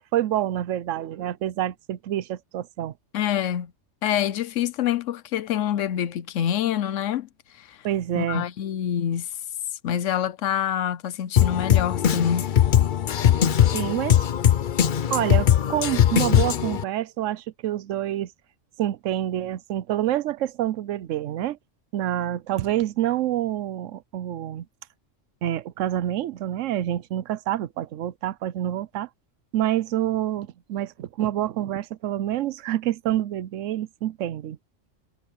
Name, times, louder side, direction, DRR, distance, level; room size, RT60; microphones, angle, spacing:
voice 1, 0.1-2.9 7.8-8.4 13.7-14.2 15.1-18.3 18.8-21.6 21.9-24.7 25.4-29.1 29.5-34.6, right 12 dB, 80° right, 1.0 m, -27 dB
voice 2, 3.1-3.7 4.0-7.3 7.6-7.8 8.1-9.3 9.8-12.5, left 10 dB, 80° left, 1.1 m, -26 dB
Drum kit, 11.4-16.8, left 10 dB, 50° left, 0.7 m, -20 dB
omnidirectional pair, 1.3 m